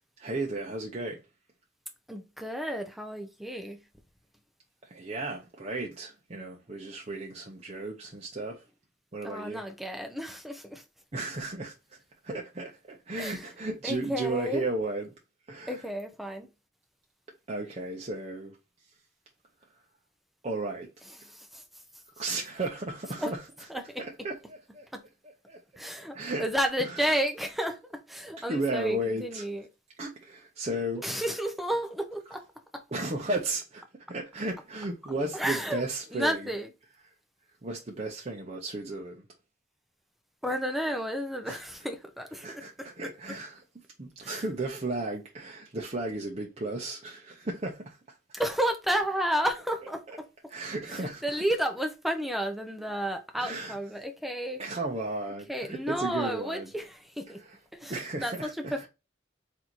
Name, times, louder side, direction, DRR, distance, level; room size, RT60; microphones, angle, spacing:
voice 1, 0.2-1.2 4.8-8.6 9.1-9.6 11.1-11.7 12.2-15.1 15.5-15.8 17.5-18.6 20.4-20.9 22.2-23.4 24.0-24.9 25.5-25.6 26.1-26.4 26.8-27.2 28.4-29.4 30.0-31.0 32.9-36.5 37.6-39.2 41.5-41.6 42.4-43.6 44.0-48.0 50.5-51.2 53.4-53.8 54.6-56.7 57.4-58.9, right 2 dB, 35° right, 0.7 m, -34 dB
voice 2, 2.1-3.8 9.2-10.8 13.2-13.5 13.8-14.6 15.7-16.5 21.2-21.6 23.2-23.3 23.7-24.0 24.9-25.0 25.8-29.7 31.0-32.4 32.7-32.8 35.3-35.8 36.1-36.7 40.4-42.9 44.2-44.4 48.3-50.3 50.9-54.6 55.5-57.4 57.7-58.9, equal, ahead, 0.7 m, -32 dB
3.9 x 2.8 x 4.4 m
head